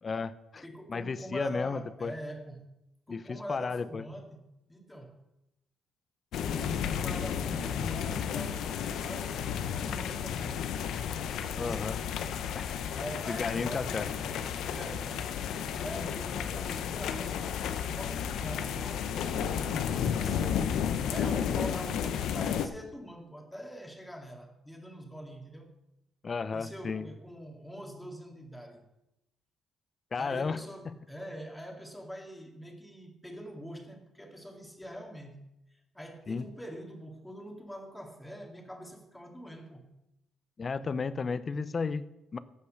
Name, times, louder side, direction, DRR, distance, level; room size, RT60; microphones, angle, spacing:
voice 1, 0.0-0.6 0.9-2.1 3.1-4.0 11.6-12.0 12.5-12.7 13.3-14.1 15.7-15.8 26.2-27.1 30.1-30.6 30.9-31.0 36.3-36.5 40.6-42.4, left 4 dB, 40° left, 15 dB, 0.7 m, -33 dB
voice 2, 0.6-2.7 3.1-5.2 6.3-10.6 11.5-11.9 12.9-14.3 14.7-20.7 21.1-25.7 26.5-28.8 30.2-35.4 35.7-39.9, equal, 5° left, 2 dB, 2.3 m, -44 dB
sound 1, 6.3-22.7, left 8 dB, 80° left, 0.7 m, -32 dB
15.0 x 5.6 x 6.5 m, 0.88 s
cardioid pair, 90°, 0 cm